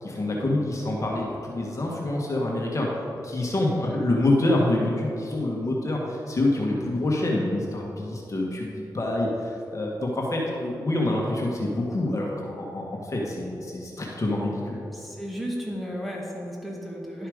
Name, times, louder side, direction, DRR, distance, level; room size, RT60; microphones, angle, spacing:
voice 1, 0.0-2.9 3.2-14.8, left 1 dB, 45° left, -2 dB, 1.5 m, -26 dB
voice 2, 14.9-17.3, equal, ahead, -3 dB, 1.9 m, -34 dB
11.5 x 5.5 x 5.0 m, 2.7 s
cardioid pair, 65°, 7 cm